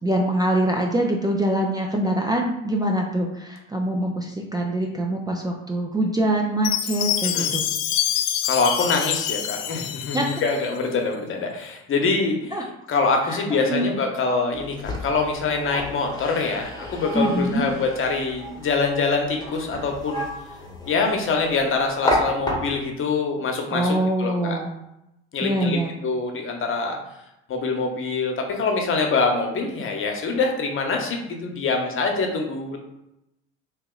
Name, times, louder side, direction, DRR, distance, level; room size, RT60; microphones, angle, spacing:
voice 1, 0.0-7.6 10.1-10.3 12.5-12.6 13.3-13.8 17.1-17.6 23.7-24.7 25.4-25.9, right 1 dB, 10° right, 0 dB, 0.4 m, -24 dB
Chime, 6.6-10.8, left 11 dB, 75° left, 0.5 m, -26 dB
voice 2, 8.4-12.5 12.9-20.3 20.9-24.6 25.3-27.0 27.5-32.8, left 4 dB, 40° left, 3 dB, 0.9 m, -24 dB
sound 1, 14.5-23.0, left 1 dB, 10° left, 1.0 m, -31 dB
2.9 x 2.8 x 3.7 m, 0.87 s
hypercardioid pair, 75°, 32 cm